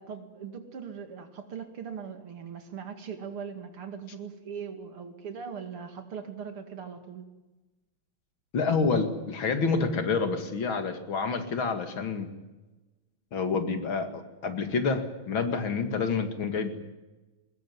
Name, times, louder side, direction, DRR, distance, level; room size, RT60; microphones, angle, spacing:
voice 1, 0.0-7.2, right 7 dB, 75° right, 7 dB, 3.2 m, -40 dB
voice 2, 8.5-12.3 13.3-16.8, left 4 dB, 65° left, 8 dB, 2.9 m, -28 dB
21.5 x 20.0 x 9.5 m, 1.1 s
omnidirectional pair, 2.4 m